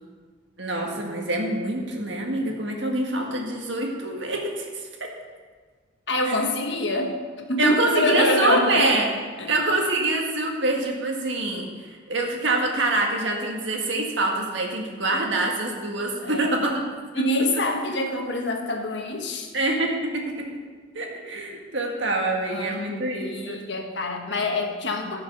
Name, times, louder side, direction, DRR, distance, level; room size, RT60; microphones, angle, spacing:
voice 1, 0.6-4.9 7.6-9.1 9.5-16.7 17.2-17.3 19.5-20.5 20.9-23.6, right 2 dB, 70° right, 1 dB, 1.8 m, -25 dB
voice 2, 6.1-8.9 9.4-9.5 16.2-16.5 17.1-19.5 22.5-25.2, left 1 dB, 65° left, 3 dB, 1.4 m, -26 dB
14.5 x 5.8 x 5.5 m, 1.5 s
head